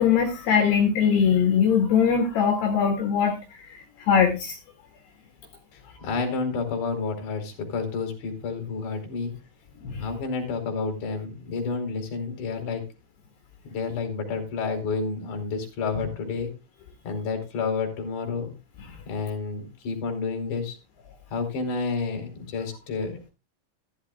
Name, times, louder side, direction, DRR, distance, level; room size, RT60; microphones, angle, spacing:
voice 1, 0.0-3.3 4.0-4.6 9.8-10.1, left 7 dB, 65° left, 3 dB, 3.9 m, -21 dB
voice 2, 6.0-9.3 10.0-12.8 13.6-16.5 17.0-18.5 19.1-20.8 21.3-23.2, left 4 dB, 45° left, 4 dB, 4.1 m, -30 dB
14.5 x 12.5 x 2.2 m, 0.27 s
omnidirectional pair, 5.2 m